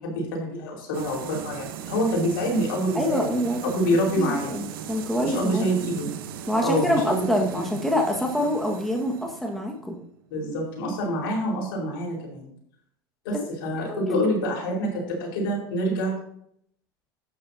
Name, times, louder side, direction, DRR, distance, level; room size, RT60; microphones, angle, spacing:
voice 1, 0.0-3.3 3.7-4.5 5.2-6.1 6.6-7.7 10.3-12.5 13.2-16.2, equal, 75° left, -2 dB, 4.9 m, -26 dB
sound 1, 0.9-10.6, right 9 dB, 75° right, 1.1 m, -38 dB
voice 2, 3.0-3.6 4.2-5.6 6.5-10.0 13.3-13.4 13.9-14.3, left 1 dB, ahead, 0 dB, 1.7 m, -26 dB
12.0 x 9.8 x 2.9 m, 0.69 s
hypercardioid pair, 90°, 12 cm